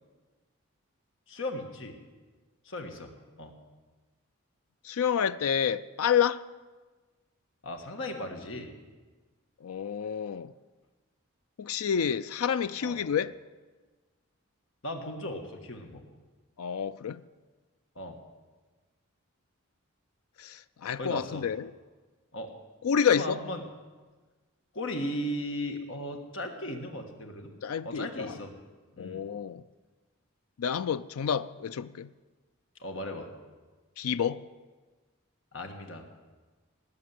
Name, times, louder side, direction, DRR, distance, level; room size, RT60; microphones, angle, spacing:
voice 1, 1.3-2.0 2.6-3.1 3.4-3.5 7.6-8.7 12.8-13.0 14.8-16.0 17.9-18.2 21.0-21.4 22.3-22.5 23.0-23.6 24.7-27.5 27.8-28.5 29.0-29.2 32.8-33.3 35.5-36.0, left 1 dB, 60° left, 1.6 m, -36 dB
voice 2, 4.8-6.4 9.6-10.5 11.6-13.4 16.6-17.2 20.4-21.7 22.8-23.4 27.6-28.4 29.0-29.6 30.6-32.1 34.0-34.4, left 7 dB, 85° left, 0.4 m, -29 dB
19.0 x 7.5 x 9.4 m
head